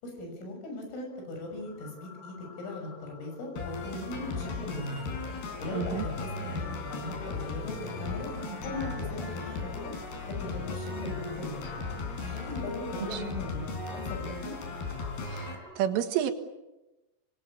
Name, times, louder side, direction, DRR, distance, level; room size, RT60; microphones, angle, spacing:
voice 1, 0.0-5.0 5.6-8.3 8.6-9.9 10.3-11.6 12.0-13.6 13.9-14.5, left 2 dB, 85° left, 3 dB, 9.2 m, -39 dB
sound 1, 1.1-15.8, left 2 dB, 10° left, 3.9 m, -52 dB
sound 2, 3.6-15.6, left 4 dB, 55° left, 5.7 m, -36 dB
sound 3, 4.9-14.0, right 2 dB, 45° right, 5.6 m, -46 dB
voice 2, 5.7-6.0 13.0-13.2 15.2-16.3, right 10 dB, 80° right, 7 dB, 4.1 m, -30 dB
26.5 x 21.5 x 8.6 m, 1.0 s
omnidirectional pair, 5.7 m